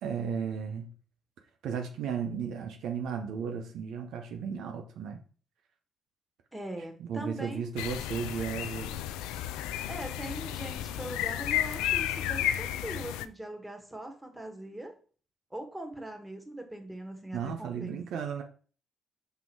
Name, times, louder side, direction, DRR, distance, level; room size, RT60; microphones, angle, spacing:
voice 1, 0.0-0.9 1.6-5.2 7.1-8.9 17.3-18.4, right 7 dB, 75° right, 0.8 m, -34 dB
voice 2, 6.5-7.7 9.9-14.9 15.5-18.2, right 1 dB, 10° right, 1.9 m, -41 dB
sound 1, 7.8-13.2, left 12 dB, 80° left, 0.3 m, -32 dB
5.7 x 3.7 x 4.6 m
hypercardioid pair, 50°, 0 cm